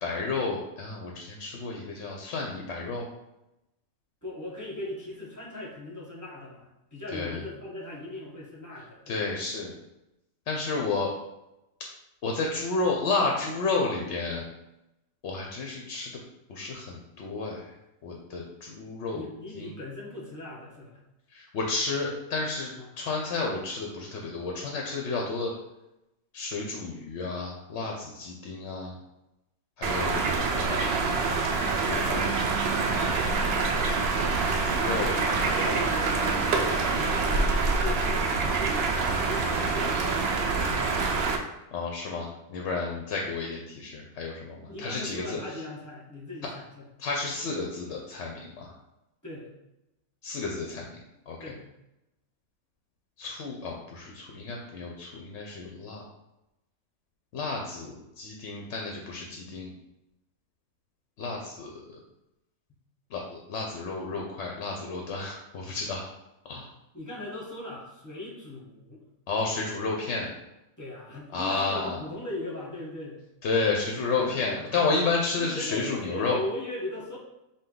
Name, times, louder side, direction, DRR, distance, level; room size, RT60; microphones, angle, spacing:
voice 1, 0.0-3.1 7.1-7.4 9.1-9.7 10.5-11.1 12.2-14.4 15.2-16.1 16.5-17.6 18.0-19.2 19.6-19.7 21.3-22.7 23.0-25.5 26.3-29.0 29.8-30.8 31.8-32.5 33.0-33.2 34.6-35.1 41.7-45.4 47.0-48.7 50.2-51.0 51.3-51.4 53.2-56.0 57.3-59.7 61.2-61.7 63.1-66.0 66.5-66.6 69.3-70.3 71.3-72.0 73.4-76.4, left 3 dB, 60° left, 0 dB, 0.8 m, -31 dB
voice 2, 4.2-9.4 19.1-21.0 22.8-22.9 34.8-41.0 44.7-46.9 49.2-49.5 51.4-51.7 66.9-69.0 70.8-73.2 74.2-74.9 75.3-77.2, left 1 dB, 15° left, -5 dB, 0.9 m, -39 dB
sound 1, 29.8-41.4, right 4 dB, 65° right, 0.6 m, -26 dB
5.0 x 2.3 x 3.8 m, 0.91 s
omnidirectional pair, 1.5 m